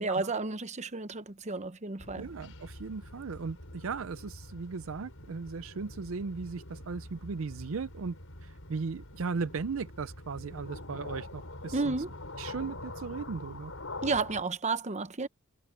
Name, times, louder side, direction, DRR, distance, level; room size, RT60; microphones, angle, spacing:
voice 1, 0.0-2.2 11.7-12.1 14.0-15.3, right 3 dB, 35° right, 0.9 m, -32 dB
sound 1, 2.0-14.4, left 2 dB, 70° left, 6.8 m, -45 dB
voice 2, 2.2-8.2 8.4-11.9 12.4-13.7, right 4 dB, 70° right, 0.5 m, -37 dB
head